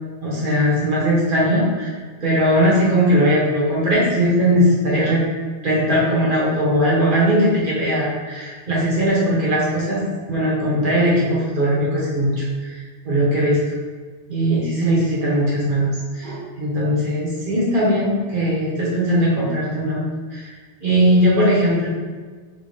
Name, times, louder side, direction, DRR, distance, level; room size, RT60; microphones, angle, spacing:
voice 1, 0.2-2.0 2.2-5.2 5.6-10.0 10.3-13.6 14.3-20.5 20.8-21.9, equal, 50° right, -7 dB, 1.4 m, -19 dB
3.5 x 3.2 x 3.4 m, 1.5 s
omnidirectional pair, 1.2 m